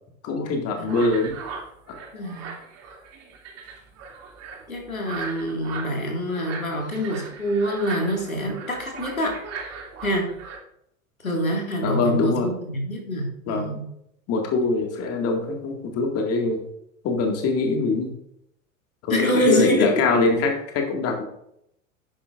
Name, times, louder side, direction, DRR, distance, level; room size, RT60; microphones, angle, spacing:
voice 1, 0.2-1.3 1.9-2.0 11.8-12.5 13.5-13.8 14.3-16.6 17.0-18.1 19.0-21.2, left 3 dB, 35° left, 3 dB, 2.0 m, -23 dB
sound 1, 0.9-10.6, right 5 dB, 40° right, 2.7 m, -38 dB
voice 2, 2.1-2.5 4.7-9.4 10.0-10.3 11.2-13.8 19.1-20.2, equal, 85° left, 0 dB, 2.2 m, -25 dB
10.5 x 9.0 x 2.5 m, 0.74 s
figure-of-eight pair, 85°, 40 cm